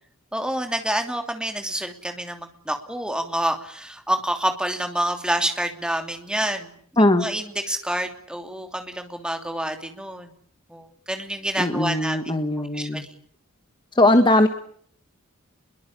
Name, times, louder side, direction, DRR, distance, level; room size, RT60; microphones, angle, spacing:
voice 1, 0.3-6.8 7.2-10.3 10.7-13.0, right 1 dB, 5° right, 5 dB, 2.8 m, -28 dB
voice 2, 11.6-13.1 13.9-14.5, left 1 dB, 20° left, 7 dB, 1.5 m, -19 dB
26.0 x 22.5 x 8.7 m, 0.62 s
head